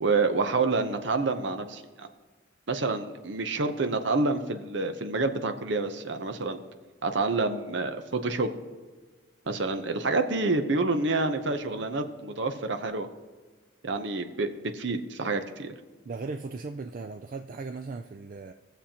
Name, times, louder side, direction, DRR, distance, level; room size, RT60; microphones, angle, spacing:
voice 1, 0.0-2.1 2.7-6.6 7.0-8.5 9.5-13.1 13.8-14.5 14.7-15.7, right 3 dB, 65° right, 7 dB, 0.8 m, -28 dB
voice 2, 16.1-18.5, right 4 dB, 45° right, 7 dB, 0.4 m, -37 dB
19.0 x 7.0 x 2.9 m, 1.3 s
head